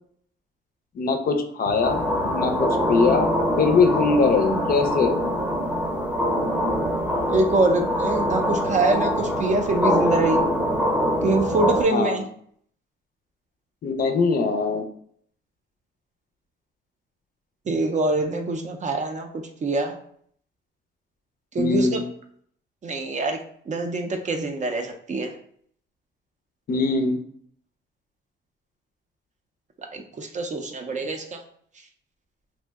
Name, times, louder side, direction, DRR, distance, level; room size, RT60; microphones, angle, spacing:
voice 1, 1.0-2.0 2.3-5.2 11.9-12.2 13.8-14.8 21.6-22.0 26.7-27.2, left 4 dB, 50° left, 6 dB, 0.4 m, -22 dB
sound 1, 1.8-11.8, equal, 5° right, 0.8 m, -24 dB
voice 2, 7.3-10.4 11.2-12.2 17.7-19.3 19.6-20.0 21.5-22.0 22.8-23.4 23.7-25.3 29.9-31.4, right 2 dB, 35° right, 5 dB, 0.5 m, -24 dB
2.6 x 2.1 x 3.4 m, 0.63 s
cardioid pair, 90°, 20 cm